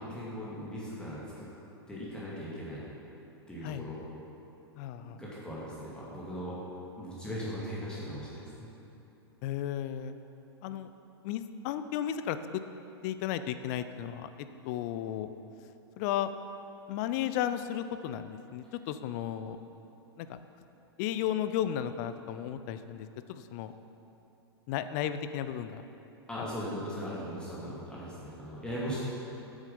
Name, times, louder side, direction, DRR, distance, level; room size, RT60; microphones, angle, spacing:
voice 1, 0.0-1.5 1.9-2.8 3.5-4.0 5.0-6.6 7.0-8.7 26.3-29.0, equal, 5° left, -8 dB, 2.1 m, -39 dB
voice 2, 4.7-5.2 9.4-10.2 10.6-10.9 11.2-12.6 13.0-15.3 16.0-16.3 16.9-19.6 20.2-20.4 21.0-23.7 24.7-25.8 26.4-26.5 27.6-27.7, left 10 dB, 40° left, 11 dB, 0.5 m, -34 dB
9.0 x 7.2 x 5.3 m, 3.0 s
figure-of-eight pair, 100°, 14 cm